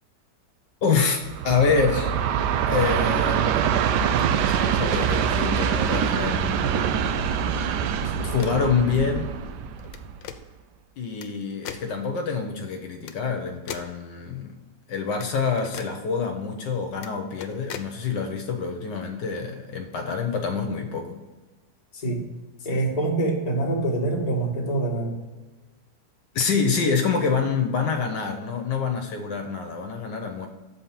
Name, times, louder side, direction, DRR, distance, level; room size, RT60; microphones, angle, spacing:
voice 1, 0.8-2.2 2.7-3.9 4.4-7.2 8.0-9.3 11.0-14.5 14.9-21.2 26.3-30.5, left 5 dB, 75° left, 4 dB, 1.5 m, -26 dB
Train, 1.2-10.4, right 8 dB, 75° right, 1.1 m, -24 dB
sound 1, 8.2-8.7 9.8-10.4 11.2-11.3 11.7-11.9 13.0-13.2 13.7-13.9 15.2-15.3 15.6-15.9 16.9-17.1 17.4-17.9, left 9 dB, 90° left, 1.3 m, -38 dB
voice 2, 21.9-22.2 22.6-25.2, right 2 dB, 25° left, -2 dB, 1.4 m, -25 dB
7.0 x 4.2 x 5.8 m, 1.2 s
omnidirectional pair, 2.0 m